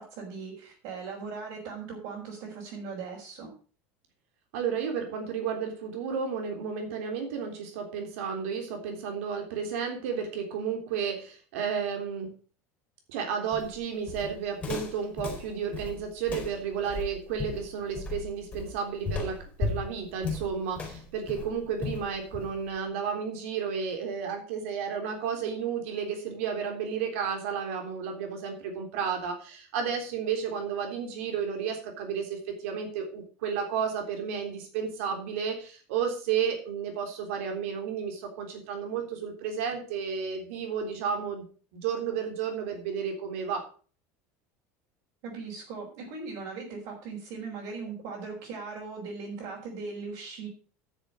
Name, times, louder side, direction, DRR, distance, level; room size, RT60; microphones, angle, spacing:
voice 1, 0.0-3.5 45.2-50.5, right 4 dB, 60° right, -4 dB, 4.9 m, -39 dB
voice 2, 4.5-12.3 13.1-41.5 41.7-43.7, right 7 dB, 85° right, 4 dB, 3.5 m, -32 dB
Walk footsteps, 13.5-22.8, left 4 dB, 20° left, 4.1 m, -36 dB
10.5 x 7.0 x 6.3 m, 0.39 s
cardioid pair, 160°, 7 cm